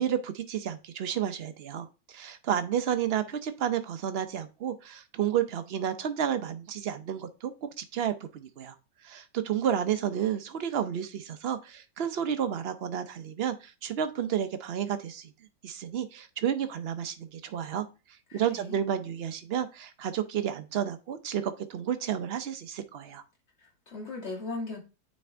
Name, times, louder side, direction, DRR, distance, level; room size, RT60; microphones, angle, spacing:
voice 1, 0.0-8.7 9.0-15.3 15.6-17.9 18.3-23.2, right 9 dB, 55° right, 10 dB, 0.7 m, -31 dB
voice 2, 18.3-18.8 23.6-24.8, left 3 dB, 40° left, -2 dB, 2.6 m, -38 dB
9.0 x 4.3 x 3.4 m, 0.31 s
omnidirectional pair, 1.7 m